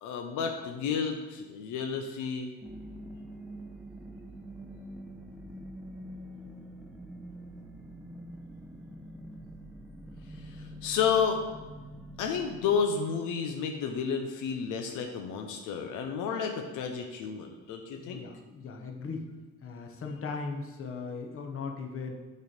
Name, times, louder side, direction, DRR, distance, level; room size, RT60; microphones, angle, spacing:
voice 1, 0.0-2.5 10.3-11.4 12.2-18.2, left 6 dB, 90° left, 4 dB, 0.6 m, -31 dB
sound 1, 2.6-12.8, equal, 5° right, 0.7 m, -45 dB
voice 2, 18.0-19.3 19.6-22.1, left 4 dB, 45° left, 2 dB, 1.0 m, -38 dB
6.6 x 3.2 x 5.1 m, 1.3 s
cardioid pair, 90°, 30 cm